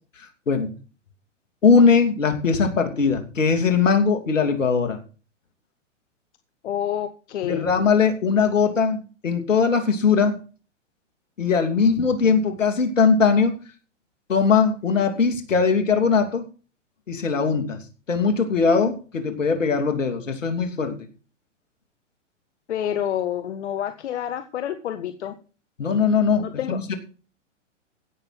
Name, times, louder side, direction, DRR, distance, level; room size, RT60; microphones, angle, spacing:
voice 1, 1.6-5.0 7.4-10.4 11.4-13.6 14.3-16.5 17.1-17.8 18.1-20.9 25.8-26.9, left 5 dB, 85° left, 5 dB, 3.0 m, -20 dB
voice 2, 6.6-7.7 22.7-25.3 26.4-26.8, left 10 dB, 65° left, 8 dB, 1.4 m, -28 dB
16.5 x 6.7 x 6.0 m, 0.38 s
hypercardioid pair, 125°, 37 cm